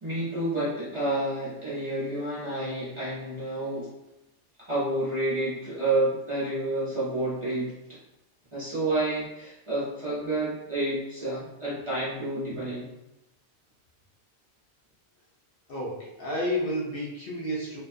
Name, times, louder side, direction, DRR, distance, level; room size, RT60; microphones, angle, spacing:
voice 1, 0.0-3.9 4.6-8.0 8.5-12.9, right 2 dB, 30° right, -9 dB, 0.7 m, -29 dB
voice 2, 15.7-17.8, equal, 60° left, -4 dB, 0.7 m, -31 dB
2.4 x 2.3 x 2.4 m, 0.90 s
omnidirectional pair, 1.2 m